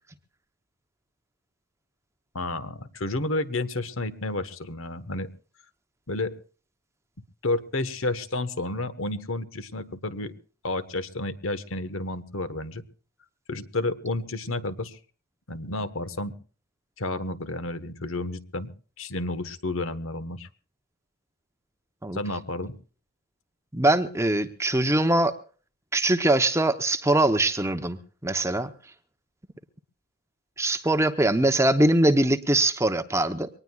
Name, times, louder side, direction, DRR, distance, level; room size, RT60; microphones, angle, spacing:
voice 1, 2.3-5.3 6.1-6.4 7.4-10.3 10.6-12.8 13.5-15.0 15.5-16.3 17.0-18.7 19.0-20.5 22.1-22.8, left 2 dB, 65° left, 1.2 m, -31 dB
voice 2, 23.7-25.4 25.9-28.0 28.2-28.7 30.6-33.5, right 1 dB, 10° right, 0.7 m, -22 dB
23.5 x 19.0 x 2.4 m
head